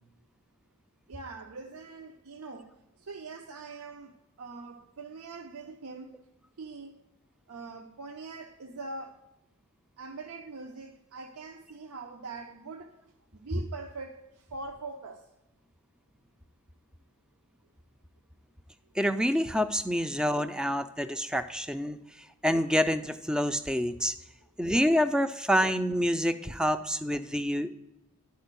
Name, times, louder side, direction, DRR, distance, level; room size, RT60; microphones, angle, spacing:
voice 1, 1.1-2.7 3.0-4.1 4.4-6.1 6.6-7.0 7.5-9.2 10.0-12.9 13.3-15.2, right 3 dB, 85° right, 0.6 m, -42 dB
voice 2, 19.0-22.0 22.4-24.1 24.6-27.7, equal, 5° right, 0.3 m, -27 dB
10.5 x 4.4 x 6.6 m
head